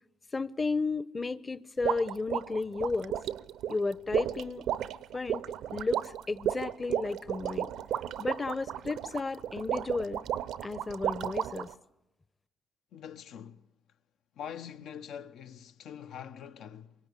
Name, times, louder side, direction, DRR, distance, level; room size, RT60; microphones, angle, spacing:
voice 1, 0.3-3.1 3.7-4.6 5.1-5.4 5.7-7.7 8.2-10.2 10.6-11.7, left 3 dB, 25° left, 0.8 m, -33 dB
sound 1, 1.8-11.7, right 10 dB, 80° right, 0.8 m, -33 dB
voice 2, 12.9-13.6 14.4-16.9, left 8 dB, 80° left, 1.0 m, -44 dB
24.5 x 22.5 x 8.2 m
cardioid pair, 90°, 0 cm